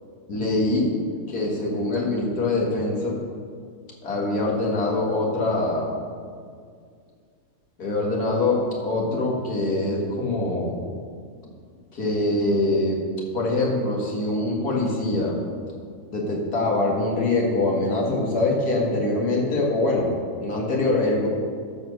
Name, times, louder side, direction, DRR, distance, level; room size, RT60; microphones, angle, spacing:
voice 1, 0.3-0.9 1.3-3.2 4.0-5.9 7.8-10.8 11.9-13.0 13.3-15.5 16.1-20.1 20.4-21.3, left 2 dB, 90° left, -2 dB, 2.4 m, -24 dB
13.5 x 4.5 x 6.4 m, 2.1 s
omnidirectional pair, 1.6 m